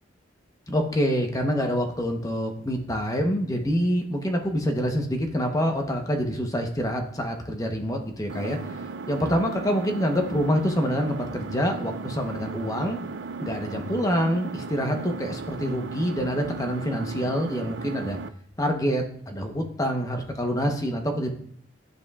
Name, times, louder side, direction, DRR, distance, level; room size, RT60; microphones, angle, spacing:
voice 1, 0.7-8.6 9.1-13.0 13.4-18.2 18.6-21.3, equal, 20° left, 3 dB, 0.8 m, -26 dB
Engine, 8.3-18.3, right 4 dB, 65° right, 0.4 m, -36 dB
12.5 x 5.2 x 2.3 m, 0.63 s
head